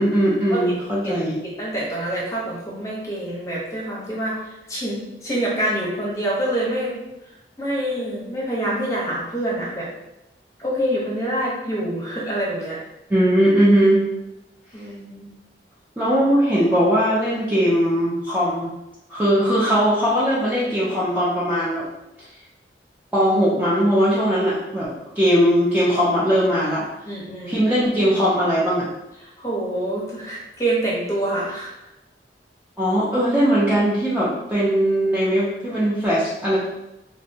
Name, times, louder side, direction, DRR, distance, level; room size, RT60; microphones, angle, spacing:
voice 1, 0.0-1.4 13.1-14.0 16.0-18.7 19.1-21.8 23.1-26.9 27.5-28.9 32.8-36.6, equal, 10° right, -8 dB, 0.4 m, -19 dB
voice 2, 1.4-6.9 7.6-9.9 10.6-12.8 14.7-15.3 27.1-27.6 29.2-31.7 34.6-34.7, right 1 dB, 20° left, -6 dB, 0.7 m, -26 dB
2.5 x 2.1 x 2.7 m, 0.93 s
head